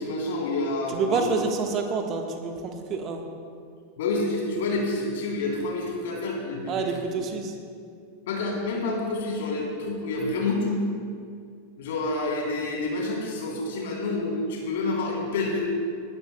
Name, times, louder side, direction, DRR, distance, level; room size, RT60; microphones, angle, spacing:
voice 1, 0.0-1.2 4.0-6.8 8.3-10.8 11.8-15.6, left 2 dB, 55° left, -2 dB, 3.4 m, -28 dB
voice 2, 0.9-3.2 6.7-7.6, right 4 dB, 30° right, 4 dB, 1.3 m, -28 dB
20.5 x 12.0 x 2.2 m, 2.3 s
figure-of-eight pair, 90°, 0 cm